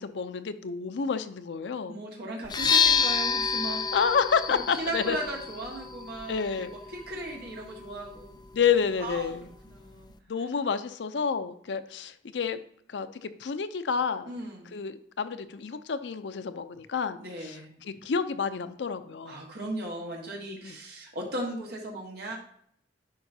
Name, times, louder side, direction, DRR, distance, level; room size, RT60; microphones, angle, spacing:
voice 1, 0.0-2.0 3.9-5.2 6.3-6.7 8.5-9.5 10.3-12.6 12.9-14.3 14.7-19.4 20.6-20.8, left 6 dB, 85° left, 11 dB, 0.5 m, -29 dB
voice 2, 1.9-3.8 4.5-8.4 9.0-9.3 9.6-10.1 14.2-14.8 17.2-17.7 19.2-22.4, right 1 dB, 65° right, -2 dB, 1.5 m, -37 dB
sound 1, 2.4-10.2, left 6 dB, 25° left, 0.4 m, -30 dB
10.5 x 4.8 x 2.7 m, 0.67 s
head